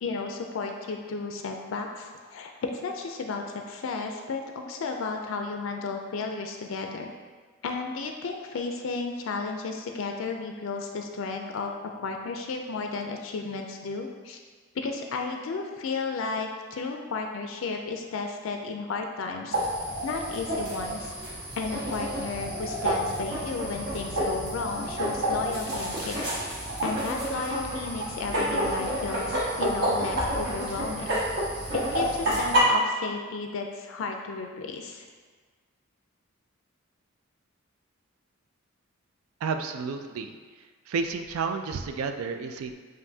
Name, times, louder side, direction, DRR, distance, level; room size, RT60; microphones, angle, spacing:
voice 1, 0.0-7.1 7.6-11.7 12.0-14.4 14.7-19.6 20.0-21.1 21.6-26.3 26.8-31.2 31.7-35.1, left 4 dB, 65° left, 3 dB, 0.4 m, -33 dB
sound 1, 19.5-32.6, right 1 dB, 50° right, 1.5 m, -29 dB
Bass drum, 30.1-31.6, equal, 20° right, 0.4 m, -41 dB
voice 2, 39.4-40.4 40.9-42.7, right 5 dB, 85° right, 7 dB, 0.3 m, -31 dB
7.2 x 2.6 x 2.7 m, 1.5 s
head